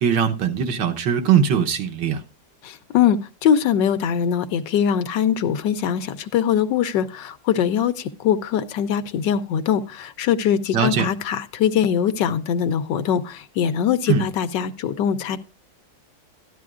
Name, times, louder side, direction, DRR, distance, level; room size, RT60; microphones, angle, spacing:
voice 1, 0.0-2.2 10.7-11.1 14.1-14.3, right 7 dB, 80° right, 1.7 m, -20 dB
voice 2, 2.6-15.4, left 8 dB, 80° left, 1.4 m, -22 dB
13.0 x 11.0 x 2.4 m
omnidirectional pair, 1.9 m